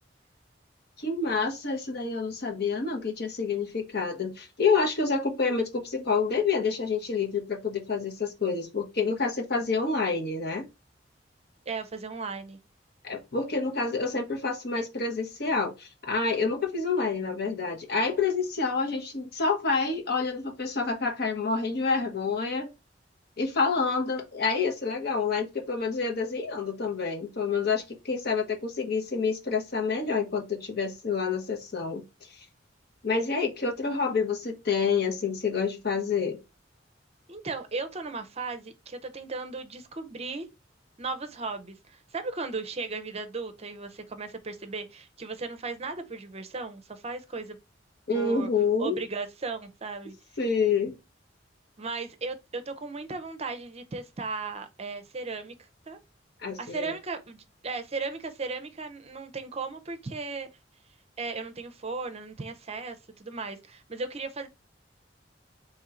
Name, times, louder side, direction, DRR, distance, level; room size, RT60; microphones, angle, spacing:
voice 1, 1.0-10.7 13.0-22.7 23.4-32.0 33.0-36.4 48.1-49.0 50.4-51.0 56.4-56.9, left 4 dB, 60° left, 1.1 m, -28 dB
voice 2, 11.7-12.6 37.3-40.5 41.0-47.6 48.1-48.5 48.8-50.2 51.8-55.5 55.9-56.0 56.6-60.5 61.2-64.5, right 3 dB, 35° right, 0.6 m, -36 dB
4.4 x 3.0 x 3.8 m
head